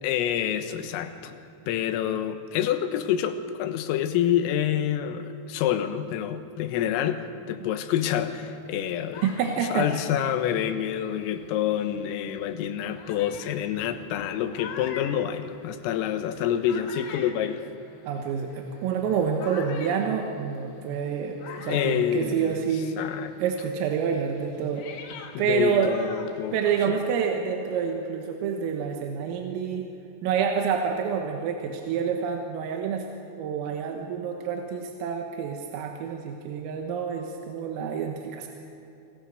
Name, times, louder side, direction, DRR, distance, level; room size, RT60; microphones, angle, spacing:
voice 1, 0.0-1.4 1.7-9.2 9.6-17.6 21.5-22.6 23.0-23.3 25.4-26.6 26.9-27.0, left 10 dB, 90° left, 9 dB, 3.8 m, -27 dB
sound 1, 8.7-11.7 12.4-12.5 13.0-23.0 23.3-27.0, left 6 dB, 60° left, 3.4 m, -45 dB
voice 2, 9.2-9.9 10.1-10.2 18.1-23.1 23.4-24.9 25.4-25.9 26.5-29.9 30.2-33.0 33.4-38.5, right 7 dB, 90° right, 3 dB, 4.0 m, -28 dB
28.0 x 21.0 x 6.6 m, 2.9 s
omnidirectional pair, 5.9 m